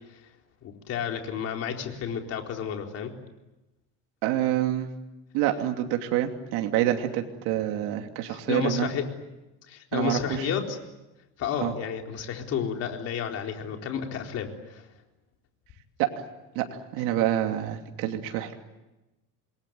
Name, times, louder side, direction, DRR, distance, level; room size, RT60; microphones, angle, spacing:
voice 1, 0.6-3.1 8.3-9.0 9.7-10.8 11.4-14.9, left 7 dB, 50° left, 3 dB, 4.2 m, -31 dB
voice 2, 4.2-4.9 5.3-8.9 9.9-10.5 11.6-11.7 16.0-16.1 16.5-16.7 16.9-18.5, right 12 dB, 90° right, 4 dB, 2.9 m, -27 dB
27.5 x 22.0 x 9.3 m, 1.0 s
cardioid pair, 150°, 32 cm